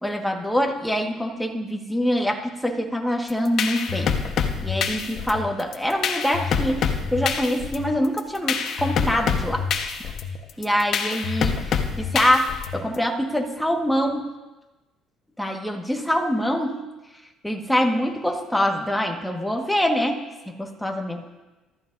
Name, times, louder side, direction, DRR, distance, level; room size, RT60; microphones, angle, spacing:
voice 1, 0.0-4.1 4.6-9.7 10.0-10.1 10.6-14.3 15.4-16.8 17.4-21.3, equal, ahead, 1 dB, 1.7 m, -25 dB
sound 1, 3.3-12.9, left 6 dB, 55° left, 1.3 m, -26 dB
24.0 x 13.5 x 2.7 m, 1.1 s
cardioid pair, 130°, 0 cm